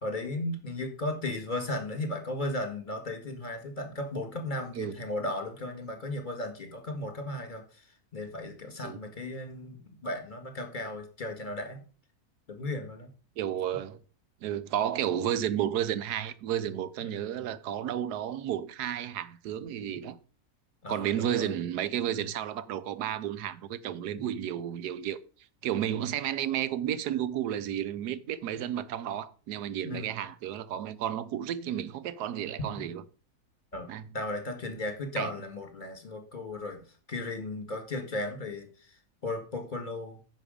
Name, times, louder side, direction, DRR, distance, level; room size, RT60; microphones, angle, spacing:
voice 1, 0.0-7.9 8.1-11.8 12.5-13.1 17.1-17.2 20.8-21.5 29.8-30.2 33.7-33.9 34.1-36.8 37.1-39.0 39.2-40.2, left 1 dB, 30° left, 1.9 m, -35 dB
voice 2, 13.4-14.0 14.4-20.2 20.9-25.2 25.6-33.0 33.9-34.0 35.2-35.3, right 10 dB, 90° right, 1.3 m, -32 dB
9.8 x 6.3 x 5.1 m
omnidirectional pair, 1.7 m